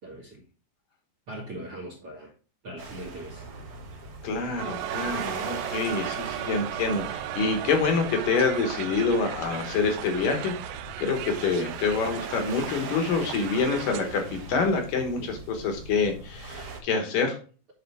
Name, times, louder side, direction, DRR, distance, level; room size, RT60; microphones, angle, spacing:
voice 1, 0.0-0.4 1.3-2.3 2.6-3.4 15.2-15.3, right 1 dB, 45° right, 2.1 m, -40 dB
sound 1, 2.8-16.8, right 3 dB, 60° right, 1.5 m, -41 dB
voice 2, 4.2-10.5 11.0-17.4, left 4 dB, 65° left, 2.7 m, -26 dB
Crowd, 4.6-14.0, right 13 dB, 85° right, 2.7 m, -36 dB
9.7 x 5.2 x 3.5 m
omnidirectional pair, 4.8 m